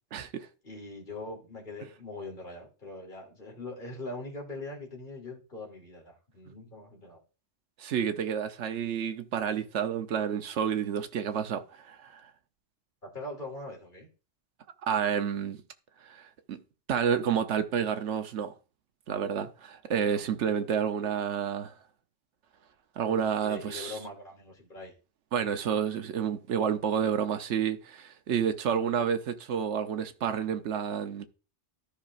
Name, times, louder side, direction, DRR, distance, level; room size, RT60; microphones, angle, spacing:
voice 1, 0.1-0.5 7.8-12.2 14.8-15.6 16.0-16.6 16.9-18.5 19.1-21.7 23.0-24.0 25.3-31.2, right 8 dB, 80° right, 1.1 m, -30 dB
voice 2, 0.6-7.2 13.0-14.1 20.0-20.3 23.4-24.9, left 2 dB, 45° left, 3.0 m, -42 dB
13.5 x 5.5 x 2.5 m
omnidirectional pair, 1.2 m